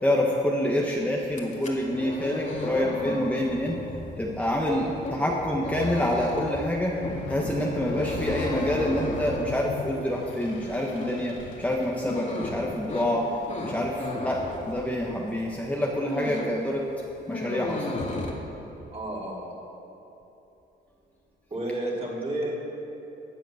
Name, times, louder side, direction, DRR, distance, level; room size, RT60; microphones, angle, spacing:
voice 1, 0.0-3.8 4.2-7.0 7.3-16.8 17.3-18.1, left 1 dB, 5° left, -2 dB, 1.4 m, -27 dB
sound 1, 1.2-15.3 15.7-16.6 16.9-18.3, left 2 dB, 35° left, 2.3 m, -34 dB
sound 2, 2.4-9.4, right 3 dB, 75° right, 3.1 m, -44 dB
sound 3, 6.9-17.4, left 4 dB, 80° left, 1.8 m, -41 dB
voice 2, 18.9-19.6 21.5-22.5, right 1 dB, 30° right, -4 dB, 3.7 m, -32 dB
16.0 x 8.2 x 6.5 m, 3.0 s
cardioid pair, 90°, 20 cm